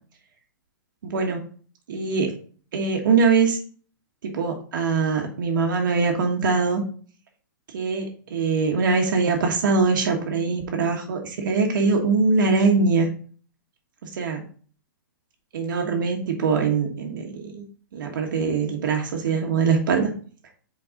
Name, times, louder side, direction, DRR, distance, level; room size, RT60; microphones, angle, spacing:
voice 1, 1.0-1.4 1.9-2.3 2.7-3.6 4.2-6.8 7.7-13.1 14.0-14.4 15.5-17.6 17.9-20.1, right 4 dB, 65° right, 2 dB, 1.5 m, -22 dB
6.2 x 4.6 x 3.9 m, 0.43 s
hypercardioid pair, 150°, 11 cm